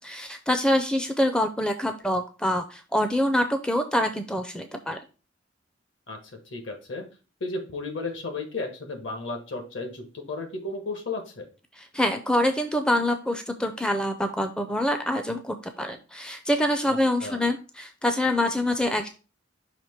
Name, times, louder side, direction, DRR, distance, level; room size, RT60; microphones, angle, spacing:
voice 1, 0.0-5.0 11.8-19.1, left 1 dB, 5° left, 6 dB, 0.4 m, -25 dB
voice 2, 6.1-7.1 7.4-11.5 16.9-17.4, left 3 dB, 70° left, 4 dB, 1.5 m, -34 dB
5.9 x 2.9 x 5.6 m, 0.34 s
head